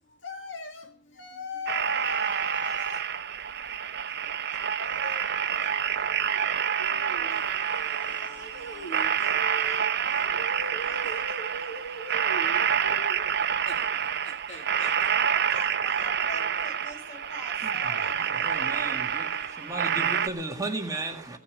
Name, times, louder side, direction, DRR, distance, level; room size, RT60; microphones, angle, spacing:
voice 1, 0.1-3.1 4.1-13.4 13.7-15.2, equal, 65° left, 2.1 m, -41 dB
sound 1, 1.7-20.3, right 8 dB, 55° right, 0.8 m, -28 dB
voice 2, 15.1-20.3, left 1 dB, 35° left, 7.3 m, -45 dB
voice 3, 18.4-19.3 19.6-21.4, right 2 dB, 15° right, 1.9 m, -34 dB
17.0 x 7.1 x 9.7 m
head